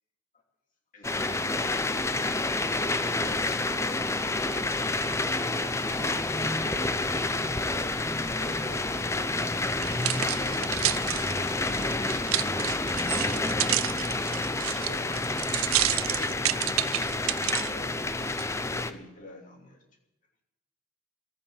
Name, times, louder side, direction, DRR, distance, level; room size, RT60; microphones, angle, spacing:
sound 1, 1.0-18.9, left 2 dB, 15° left, 0.6 m, -29 dB
voice 1, 7.3-10.8 13.0-15.3 15.5-18.2 18.7-19.8, left 1 dB, 40° left, 1 dB, 2.8 m, -48 dB
sound 2, 9.7-17.7 18.3-18.4, right 15 dB, 80° right, 0.5 m, -30 dB
14.5 x 9.0 x 10.0 m, 0.96 s
head